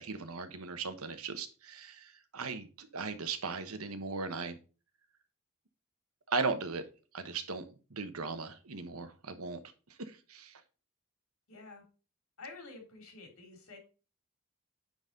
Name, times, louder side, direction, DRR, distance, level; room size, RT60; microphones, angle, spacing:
voice 1, 0.0-4.6 6.3-6.8 7.1-7.6 7.9-9.6 10.0-10.6, right 4 dB, 85° right, 9 dB, 1.2 m, -37 dB
voice 2, 11.5-11.8 12.4-13.8, left 3 dB, 85° left, 3 dB, 3.0 m, -49 dB
9.7 x 4.1 x 5.2 m, 0.35 s
head